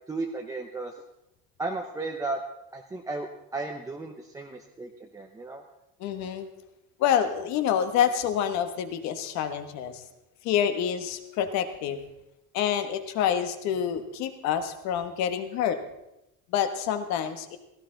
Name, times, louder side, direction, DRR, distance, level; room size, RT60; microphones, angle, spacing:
voice 1, 0.1-0.9 1.6-2.4 2.7-5.6, right 3 dB, 10° right, 1 dB, 0.7 m, -34 dB
voice 2, 6.0-6.5 7.0-10.0 10.4-12.0 12.5-15.8 16.5-17.6, left 9 dB, 55° left, 9 dB, 1.4 m, -27 dB
16.5 x 16.0 x 3.9 m, 0.89 s
cardioid pair, 175°, 34 cm